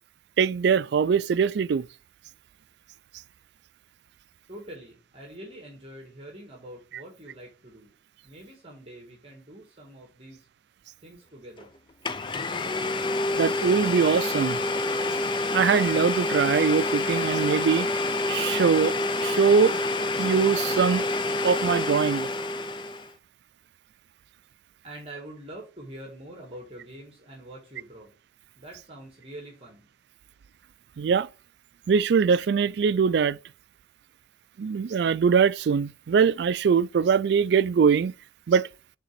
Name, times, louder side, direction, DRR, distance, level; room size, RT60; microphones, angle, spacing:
voice 1, 0.4-1.9 13.4-14.6 15.5-17.9 18.3-19.8 20.2-21.0 21.4-22.3 31.0-31.3 31.9-33.4 34.6-38.1 38.5-38.7, right 6 dB, 60° right, 0.3 m, -22 dB
voice 2, 4.5-7.9 8.2-10.5 11.0-11.7 24.8-28.1 28.6-29.9, right 1 dB, 30° right, 1.7 m, -45 dB
Domestic sounds home sounds, 11.6-11.7 12.0-23.1, left 2 dB, 25° left, 0.5 m, -27 dB
6.6 x 4.0 x 5.9 m
head